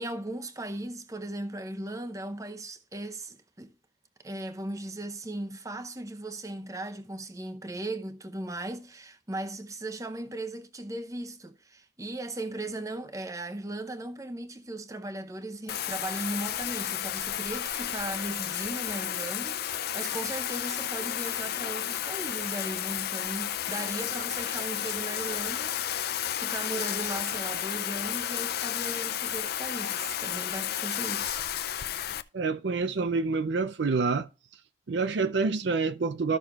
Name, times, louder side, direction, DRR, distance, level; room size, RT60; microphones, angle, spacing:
voice 1, 0.0-3.7 4.2-31.4, right 1 dB, 15° right, 0.7 m, -37 dB
Bathtub (filling or washing), 15.7-32.2, left 11 dB, 50° left, 0.4 m, -32 dB
voice 2, 32.3-34.3 34.9-36.4, right 4 dB, 65° right, 0.5 m, -27 dB
14.0 x 6.2 x 2.4 m
head